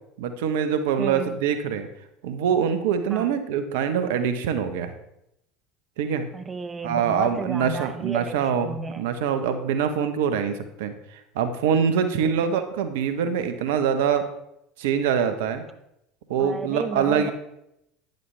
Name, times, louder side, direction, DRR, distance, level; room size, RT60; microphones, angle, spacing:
voice 1, 0.2-1.9 2.2-4.9 6.0-6.3 6.8-14.3 14.8-15.6 16.3-17.3, right 7 dB, 70° right, 9 dB, 1.1 m, -24 dB
voice 2, 1.0-1.4 3.1-3.3 6.3-9.1 12.2-12.6 16.4-17.3, right 4 dB, 25° right, 10 dB, 0.8 m, -33 dB
12.0 x 10.0 x 3.4 m, 0.81 s
hypercardioid pair, 75°, 0 cm